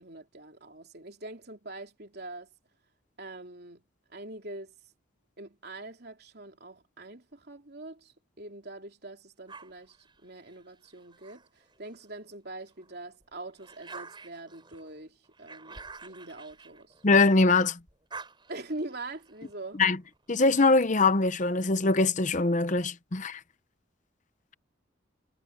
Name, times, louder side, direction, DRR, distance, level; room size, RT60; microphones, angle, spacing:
voice 1, 0.0-2.5 3.2-3.8 4.1-4.7 5.4-10.0 10.2-16.9 18.5-19.8, right 2 dB, 50° right, 3.4 m, -43 dB
sound 1, 9.5-12.2 12.7-17.5 17.8-21.1, right 4 dB, 25° right, 5.7 m, -50 dB
voice 2, 17.0-17.8 19.8-20.0 20.3-23.4, left 3 dB, 40° left, 0.8 m, -22 dB
head